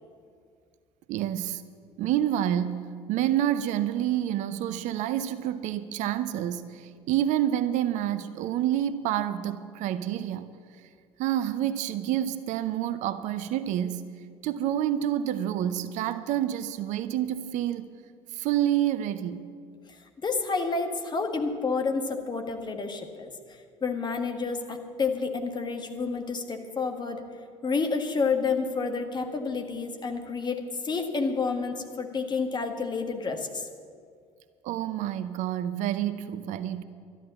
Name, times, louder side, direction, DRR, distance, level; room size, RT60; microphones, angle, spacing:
voice 1, 1.1-1.6 2.0-10.5 11.2-14.0 14.4-17.9 18.3-19.4 34.6-36.8, right 11 dB, 55° right, 0.6 m, -28 dB
voice 2, 20.2-23.3 23.8-27.2 27.6-33.7, left 4 dB, 30° left, 1.6 m, -29 dB
12.5 x 11.0 x 7.2 m
figure-of-eight pair, 60°, 15 cm